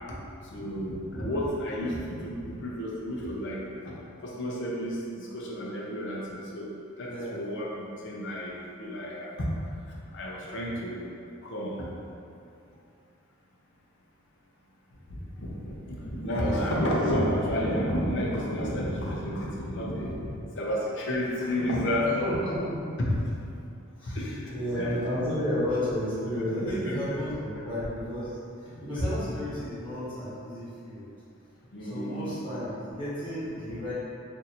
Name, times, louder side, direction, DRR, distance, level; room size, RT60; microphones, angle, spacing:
voice 1, 0.5-3.9 4.2-6.7 7.0-9.5 9.9-11.0 11.4-11.9 15.1-20.3 20.5-22.3 23.1-23.2 24.0-25.3 26.6-26.8 31.7-32.4, equal, 60° left, -4 dB, 0.7 m, -31 dB
voice 2, 7.0-7.4 16.4-16.8 22.2-22.9 24.0-28.4 28.8-31.0 31.8-33.9, equal, 25° left, -13 dB, 1.4 m, -32 dB
2.7 x 2.5 x 4.2 m, 2.6 s
head